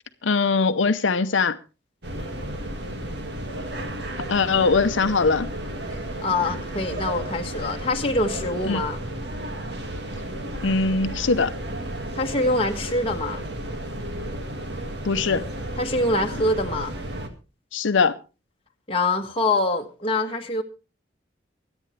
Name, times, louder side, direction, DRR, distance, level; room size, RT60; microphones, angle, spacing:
voice 1, 0.2-1.6 4.3-5.5 8.7-8.8 10.6-11.5 15.0-15.5 17.7-18.1, left 4 dB, 85° left, 0.7 m, -21 dB
sound 1, 2.0-17.3, right 1 dB, 65° right, 1.9 m, -33 dB
voice 2, 6.2-9.0 12.1-13.5 15.8-16.9 18.9-20.6, left 2 dB, 30° left, 1.5 m, -24 dB
24.0 x 9.0 x 3.2 m
head